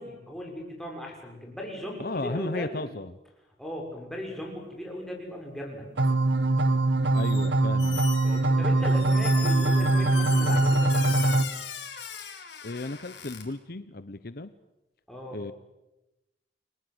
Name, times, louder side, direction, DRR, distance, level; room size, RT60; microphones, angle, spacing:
voice 1, 0.0-2.8 3.6-5.9 8.2-11.4 15.1-15.4, equal, ahead, -1 dB, 6.6 m, -38 dB
voice 2, 2.0-3.1 7.1-8.0 12.6-14.5 15.3-15.5, left 2 dB, 55° left, 12 dB, 0.9 m, -34 dB
sound 1, 6.0-11.4, right 2 dB, 75° right, 1.4 m, -22 dB
Squeak, 7.1-7.5 7.8-13.4, left 8 dB, 75° left, 5.0 m, -38 dB
30.0 x 23.0 x 8.0 m, 0.97 s
head